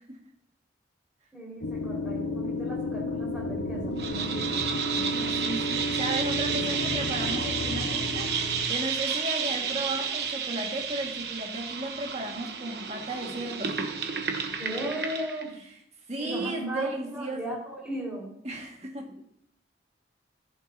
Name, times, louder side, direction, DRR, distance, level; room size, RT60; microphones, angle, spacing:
voice 1, 1.3-4.6 4.9-5.6 6.5-6.6 14.6-15.5 16.2-18.4, right 1 dB, 5° right, -5 dB, 4.5 m, -36 dB
sound 1, 1.6-8.7, left 1 dB, 80° left, 0.8 m, -32 dB
sound 2, 4.0-15.5, right 6 dB, 65° right, 1.0 m, -31 dB
voice 2, 5.1-13.9 16.1-17.5 18.4-19.2, right 1 dB, 35° right, 0 dB, 1.8 m, -35 dB
15.0 x 8.8 x 2.8 m, 0.68 s
head